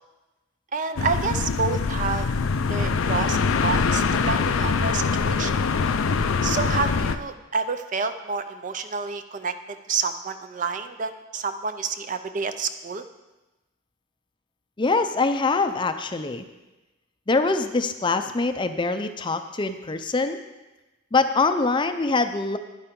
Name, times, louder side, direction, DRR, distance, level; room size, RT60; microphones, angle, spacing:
voice 1, 0.7-2.3 2.7-5.5 6.4-13.0, right 5 dB, 40° right, 10 dB, 0.5 m, -29 dB
sound 1, 1.0-7.2, left 5 dB, 90° left, 0.5 m, -23 dB
voice 2, 14.8-16.4 17.3-20.4 21.1-22.6, left 3 dB, 25° left, 9 dB, 0.5 m, -24 dB
11.5 x 9.8 x 3.7 m, 1.1 s
head